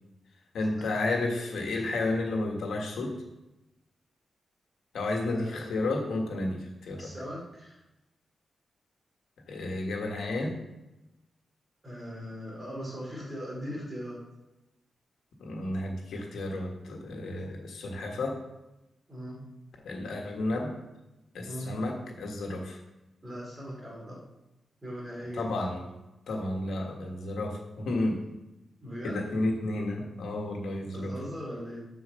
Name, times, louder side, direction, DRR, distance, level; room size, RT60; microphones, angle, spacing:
voice 1, 0.5-3.3 4.9-7.1 9.5-10.6 15.4-18.4 19.8-20.8 21.3-22.8 25.3-25.8 26.3-28.3 29.0-31.2, left 2 dB, 85° left, 1 dB, 1.6 m, -32 dB
voice 2, 5.3-5.6 7.0-7.8 11.8-14.2 19.1-19.4 21.5-21.8 23.2-24.2 24.8-25.6 28.8-29.3 30.9-31.8, equal, 15° right, -3 dB, 2.6 m, -39 dB
7.3 x 4.7 x 6.4 m, 0.96 s
wide cardioid pair, 175°, 0 cm